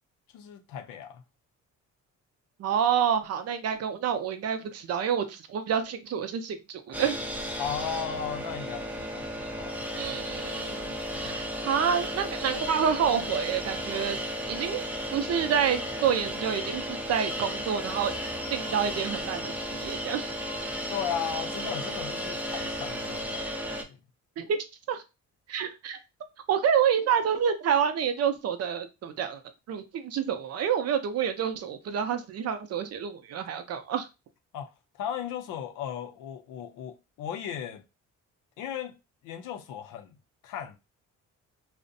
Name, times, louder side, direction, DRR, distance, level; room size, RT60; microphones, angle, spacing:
voice 1, 0.3-1.2 7.6-10.4 11.1-11.4 20.9-24.0 34.5-37.8 38.6-38.9 39.2-40.2 40.4-40.8, left 8 dB, 85° left, 0.5 m, -36 dB
voice 2, 2.6-7.2 10.0-14.2 14.5-18.1 18.5-20.3 24.4-24.6 24.9-25.0 25.5-26.0 26.5-29.4 29.7-34.1, right 8 dB, 55° right, 0.5 m, -28 dB
sound 1, 6.9-23.8, equal, 5° right, 0.4 m, -34 dB
2.5 x 2.1 x 2.6 m
cardioid pair, 90°, 30 cm